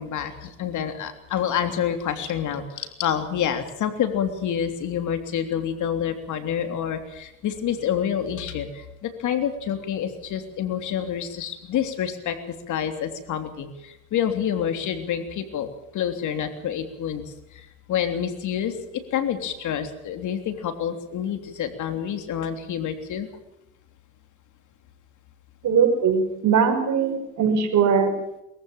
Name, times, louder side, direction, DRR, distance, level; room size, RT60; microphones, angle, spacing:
voice 1, 0.0-17.2 17.5-23.3, left 9 dB, 65° left, 7 dB, 3.3 m, -28 dB
voice 2, 25.6-28.1, right 6 dB, 65° right, 5 dB, 5.9 m, -20 dB
22.5 x 15.0 x 8.9 m, 0.88 s
supercardioid pair, 85°, 32 cm